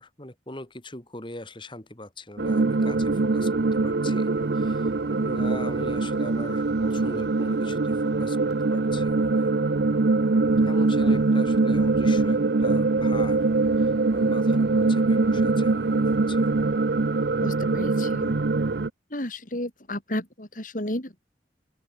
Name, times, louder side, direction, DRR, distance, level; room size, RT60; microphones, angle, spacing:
voice 1, 0.0-4.9 5.2-9.5 10.6-13.5 13.8-16.5, left 1 dB, 30° left, 4.7 m, -41 dB
sound 1, 2.4-18.9, right 3 dB, 65° right, 0.7 m, -23 dB
voice 2, 17.4-18.4 19.1-21.2, left 1 dB, 50° left, 4.7 m, -33 dB
open air
head